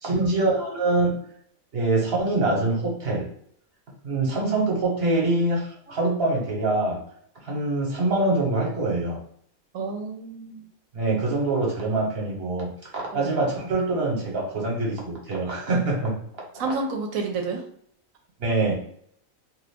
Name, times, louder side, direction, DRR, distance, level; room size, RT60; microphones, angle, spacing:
voice 1, 0.0-1.2 1.7-3.3 4.0-7.0 7.4-9.2 10.9-16.2 18.4-18.7, right 2 dB, 50° right, -2 dB, 1.2 m, -24 dB
voice 2, 9.7-10.6 13.1-13.4 16.5-17.6, right 4 dB, 75° right, 3 dB, 1.1 m, -30 dB
2.7 x 2.4 x 3.4 m, 0.65 s
omnidirectional pair, 1.4 m